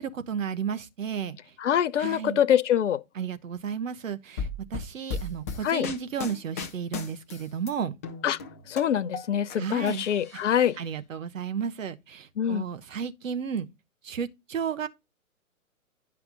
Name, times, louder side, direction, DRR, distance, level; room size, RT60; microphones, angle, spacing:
voice 1, 0.0-1.4 2.0-2.4 3.2-7.9 9.6-10.0 10.3-10.4 10.8-13.7 14.0-14.9, right 7 dB, 65° right, 1.0 m, -33 dB
voice 2, 1.6-3.0 5.6-5.9 8.2-8.4 8.7-10.7 12.4-12.6, left 9 dB, 55° left, 0.7 m, -24 dB
sound 1, 4.4-7.7 8.0-9.6 9.9-10.7, left 5 dB, 10° left, 0.4 m, -36 dB
10.5 x 5.7 x 2.5 m
figure-of-eight pair, 125°, 43 cm